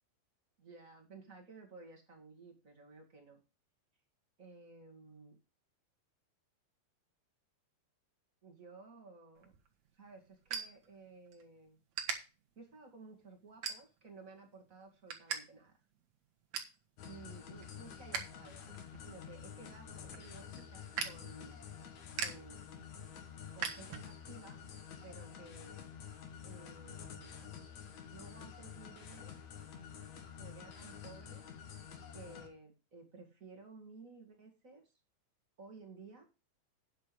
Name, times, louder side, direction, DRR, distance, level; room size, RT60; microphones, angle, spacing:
voice 1, 0.6-3.4 4.4-5.4 8.4-9.5 9.9-11.8 12.5-15.7 17.0-18.6 19.0-21.6 22.2-22.6 23.5-24.6 25.0-25.8 26.4-27.5 28.1-29.5 30.3-31.4 32.1-34.9 35.6-36.2, right 3 dB, 35° right, 1 dB, 1.2 m, -55 dB
sound 1, 9.4-11.4 11.9-12.2 12.7-13.0 13.6-14.2 14.6-15.4 15.7-15.8 16.1-16.8 17.2-18.3 18.6-24.4, right 7 dB, 60° right, 1.9 m, -42 dB
sound 2, 17.0-32.5, left 8 dB, 60° left, 2.0 m, -49 dB
9.5 x 7.4 x 5.3 m, 0.30 s
omnidirectional pair, 5.3 m